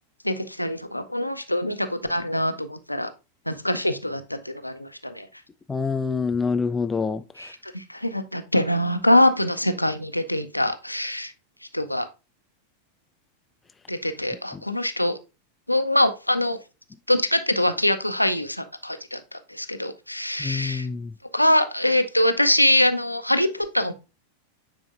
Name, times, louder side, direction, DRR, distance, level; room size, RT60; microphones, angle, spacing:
voice 1, 0.2-3.1 3.5-5.3 7.4-11.3 11.7-12.1 13.9-15.2 15.7-16.6 17.1-20.9 21.3-23.9, left 1 dB, 90° left, 0.6 m, -23 dB
voice 2, 5.7-7.5 14.5-14.6 20.4-21.1, left 5 dB, 15° left, 0.4 m, -26 dB
9.1 x 4.3 x 2.5 m
figure-of-eight pair, 90°, 0 cm